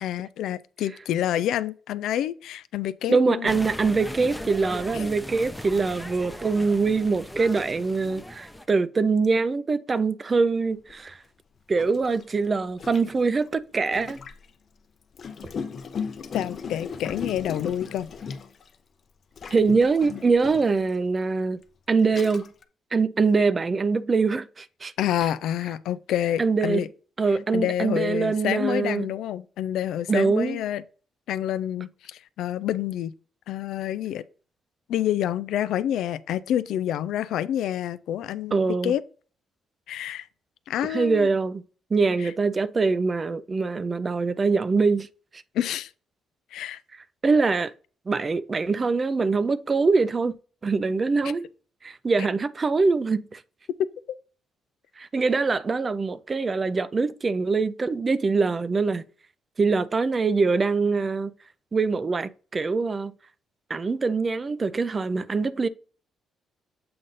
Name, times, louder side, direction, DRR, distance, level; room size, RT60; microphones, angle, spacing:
voice 1, 0.0-3.6 4.9-5.0 16.3-18.1 25.0-26.9 27.5-30.8 31.3-33.1 33.5-34.2 34.9-38.6 38.8-39.0 39.9-40.3 40.7-41.3 42.2-42.3 45.5-45.9 46.5-46.8, left 11 dB, 80° left, 0.4 m, -28 dB
voice 2, 3.1-11.2 11.7-14.2 19.5-21.6 21.9-22.4 22.9-24.9 26.4-26.8 27.2-29.1 30.1-30.6 38.5-38.9 40.9-41.6 41.9-45.1 47.2-47.7 48.1-50.4 50.6-51.5 51.8-53.4 55.0-59.0 59.6-61.3 61.7-63.1 63.7-65.7, right 4 dB, 35° right, 0.5 m, -23 dB
sound 1, 3.4-8.6, left 1 dB, 5° left, 0.7 m, -38 dB
Gurgling, 10.9-11.0 11.8-14.5 15.1-18.7 19.4-20.8 21.5-21.6 22.0-22.6, left 6 dB, 50° left, 0.7 m, -37 dB
7.7 x 2.6 x 5.5 m
cardioid pair, 90°, 0 cm